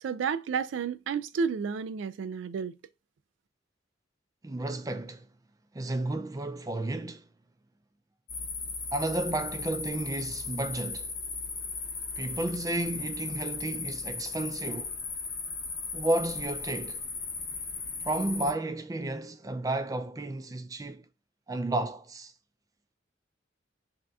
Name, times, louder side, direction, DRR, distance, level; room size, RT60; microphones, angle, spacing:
voice 1, 0.0-2.8, right 6 dB, 90° right, 0.3 m, -31 dB
voice 2, 4.4-5.3 5.7-7.3 8.9-11.1 12.2-15.0 15.9-17.0 18.0-21.1 21.5-22.3, right 2 dB, 20° right, 0.4 m, -32 dB
sound 1, 8.3-18.5, left 4 dB, 50° left, 0.7 m, -37 dB
3.4 x 2.7 x 3.4 m
head